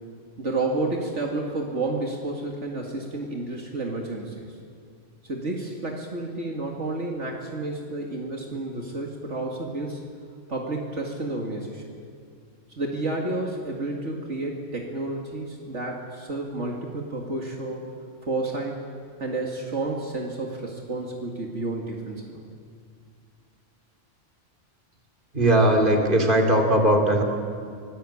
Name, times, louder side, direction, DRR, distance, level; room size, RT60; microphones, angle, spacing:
voice 1, 0.4-4.5 5.2-10.0 10.5-12.0 12.8-17.9 18.2-18.8 19.2-22.4, right 2 dB, 70° right, 0 dB, 2.5 m, -30 dB
voice 2, 25.3-27.2, right 1 dB, 40° right, 2 dB, 3.2 m, -19 dB
25.5 x 18.5 x 8.6 m, 2.2 s
omnidirectional pair, 1.3 m